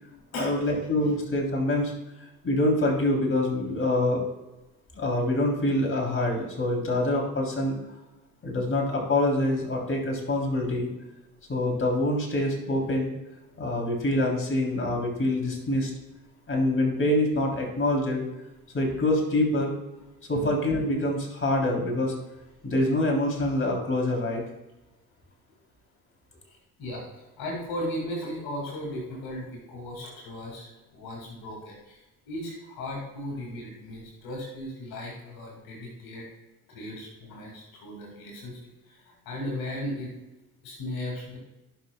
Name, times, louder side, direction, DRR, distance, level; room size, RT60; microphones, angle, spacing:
voice 1, 0.4-1.9 2.4-4.2 4.9-7.8 8.4-10.9 11.5-13.1 13.6-15.9 16.5-18.2 18.7-19.7 20.3-22.1 22.6-24.4, left 1 dB, 35° left, 0 dB, 3.2 m, -25 dB
voice 2, 26.4-27.0 27.4-36.3 36.7-38.6 38.8-40.1 40.6-41.4, left 1 dB, 70° left, -1 dB, 2.3 m, -36 dB
16.0 x 5.9 x 2.3 m, 1.0 s
hypercardioid pair, 55°, 37 cm